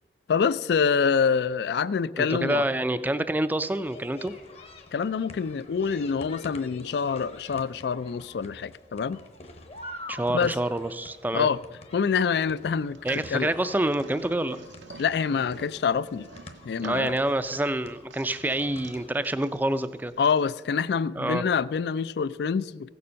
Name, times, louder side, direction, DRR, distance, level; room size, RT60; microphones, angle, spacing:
voice 1, 0.3-2.6 4.9-9.2 10.3-10.5 11.3-11.6 11.9-13.0 13.3-13.5 15.0-16.3 16.6-17.1 20.2-22.9, left 6 dB, 65° left, 0.3 m, -26 dB
voice 2, 2.2-4.3 10.1-11.5 13.0-14.6 16.8-20.1 21.2-21.4, right 1 dB, 10° right, 0.3 m, -27 dB
sound 1, 3.6-19.1, left 2 dB, 35° left, 0.9 m, -47 dB
sound 2, 12.8-20.4, right 4 dB, 85° right, 0.6 m, -49 dB
15.5 x 7.0 x 6.3 m
head